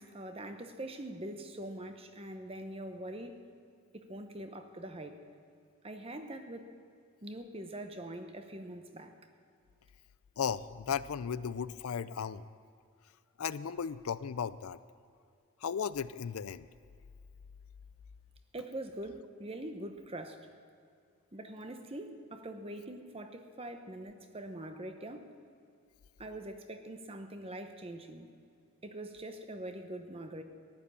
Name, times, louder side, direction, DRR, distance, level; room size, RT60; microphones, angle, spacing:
voice 1, 0.0-3.4 3.9-5.2 5.8-6.7 7.2-9.1 18.5-20.5 21.3-25.3 26.2-28.3 28.8-30.4, right 1 dB, 25° right, 7 dB, 0.9 m, -43 dB
voice 2, 10.4-12.5 13.4-14.8 15.6-16.7, left 7 dB, 75° left, 16 dB, 0.4 m, -35 dB
14.5 x 11.0 x 7.0 m, 2.4 s
head